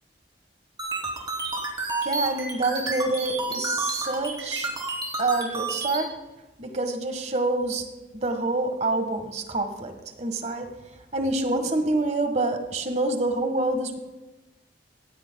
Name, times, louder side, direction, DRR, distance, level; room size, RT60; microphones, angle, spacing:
sound 1, 0.8-6.0, right 3 dB, 25° right, 3.0 m, -30 dB
voice 1, 2.0-4.7 5.2-6.1 6.6-7.8 8.1-10.7 11.1-14.0, right 2 dB, 40° right, 6 dB, 1.5 m, -27 dB
18.5 x 16.0 x 2.3 m, 1.1 s
head